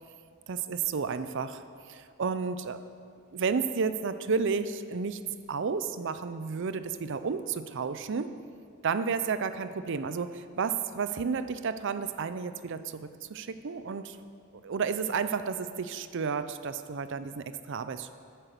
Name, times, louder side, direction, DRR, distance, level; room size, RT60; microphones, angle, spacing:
voice 1, 0.5-2.8 3.3-5.2 5.5-8.3 8.8-14.2 14.6-18.1, right 5 dB, 60° right, 11 dB, 0.5 m, -32 dB
10.5 x 8.9 x 6.9 m, 2.2 s
head